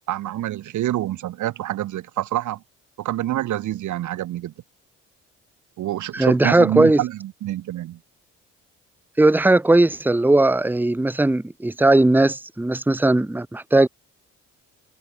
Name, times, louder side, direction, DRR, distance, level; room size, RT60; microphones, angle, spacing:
voice 1, 0.1-2.6 3.0-4.5 5.8-8.0, right 14 dB, 75° right, 1.5 m, -27 dB
voice 2, 6.1-7.0 9.2-13.9, right 2 dB, 5° right, 1.1 m, -18 dB
cardioid pair, 90°, 30 cm